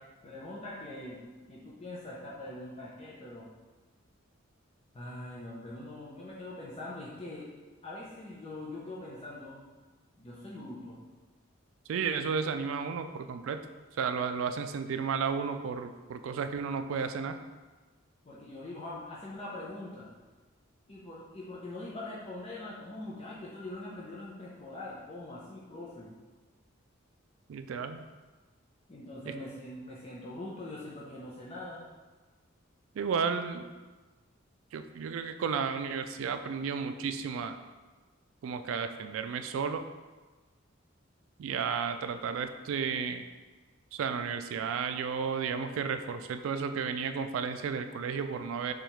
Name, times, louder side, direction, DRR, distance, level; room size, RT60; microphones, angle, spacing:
voice 1, 0.2-1.2 1.5-3.5 4.9-7.5 7.8-9.6 10.2-11.0 18.2-20.1 20.9-26.1 28.9-31.8, left 2 dB, 30° left, -6 dB, 0.6 m, -43 dB
voice 2, 11.9-13.7 14.0-17.4 27.5-28.0 33.0-33.6 34.7-37.6 38.4-39.8 41.4-43.2 43.9-48.7, right 6 dB, 75° right, 8 dB, 0.3 m, -33 dB
6.4 x 2.4 x 3.1 m, 1.3 s
head